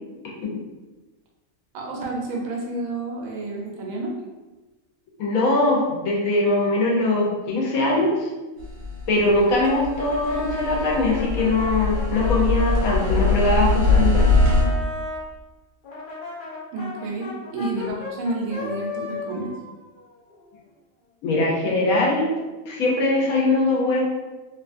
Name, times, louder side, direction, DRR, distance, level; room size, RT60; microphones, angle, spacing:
voice 1, 1.7-4.1 16.7-19.5, right 2 dB, 80° right, -1 dB, 1.0 m, -30 dB
voice 2, 5.2-8.3 9.1-14.3 17.7-17.9 21.2-22.3 22.7-24.0, left 2 dB, 85° left, -2 dB, 1.2 m, -21 dB
sound 1, 8.6-14.6, left 3 dB, 55° right, 1.1 m, -22 dB
Brass instrument, 9.5-15.2 15.8-20.6, left 3 dB, 50° left, 0.6 m, -35 dB
2.9 x 2.3 x 2.5 m, 1.2 s
omnidirectional pair, 1.4 m